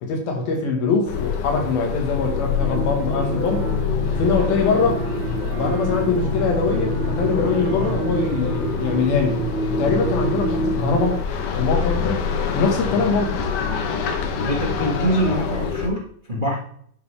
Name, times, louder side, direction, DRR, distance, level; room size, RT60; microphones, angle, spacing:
voice 1, 0.0-3.7 4.2-5.0 5.6-9.4 9.7-11.2 11.6-13.4, left 4 dB, 90° left, 1 dB, 3.5 m, -23 dB
sound 1, 1.1-15.9, left 6 dB, 70° left, 2.4 m, -26 dB
sound 2, 2.6-11.1, right 1 dB, 40° left, 1.9 m, -27 dB
Wind instrument woodwind instrument, 3.2-9.9, right 6 dB, 80° right, 3.1 m, -42 dB
voice 2, 14.4-16.6, right 1 dB, 55° right, -3 dB, 0.5 m, -24 dB
11.5 x 5.4 x 3.4 m, 0.63 s
omnidirectional pair, 4.1 m